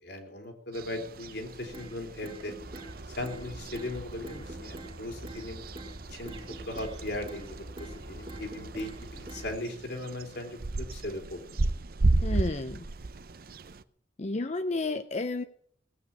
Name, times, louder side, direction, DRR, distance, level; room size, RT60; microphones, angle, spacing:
voice 1, 0.0-2.6 3.1-5.6 6.1-6.4 6.7-11.8, left 1 dB, 70° left, 3.5 m, -38 dB
sound 1, 0.7-13.8, right 2 dB, 55° right, 0.7 m, -35 dB
sound 2, 1.7-1.9 2.2-2.9 3.2-3.4 3.7-3.9 4.2-4.9 5.2-5.4 5.8-5.9 6.3-7.0 7.3-7.5 7.8-8.0 8.3-8.9 9.3-9.5, right 1 dB, 30° right, 2.4 m, -44 dB
sound 3, 2.6-9.6, right 1 dB, 85° right, 2.0 m, -45 dB
voice 2, 12.2-12.9 14.2-15.4, left 2 dB, 40° left, 0.6 m, -31 dB
18.5 x 9.1 x 7.2 m
head